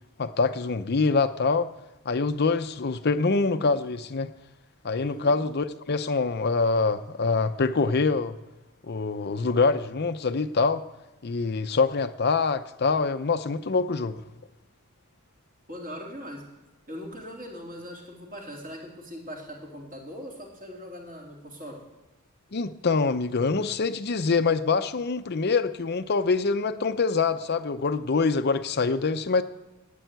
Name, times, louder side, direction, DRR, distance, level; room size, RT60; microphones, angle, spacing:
voice 1, 0.2-1.7 2.0-4.3 4.8-8.4 8.8-10.8 11.2-14.2 22.5-29.4, left 4 dB, 50° left, 10 dB, 0.6 m, -25 dB
voice 2, 5.0-5.4 15.7-16.4 16.9-21.8, equal, 40° right, -1 dB, 3.5 m, -40 dB
12.5 x 8.5 x 9.2 m, 1.1 s
head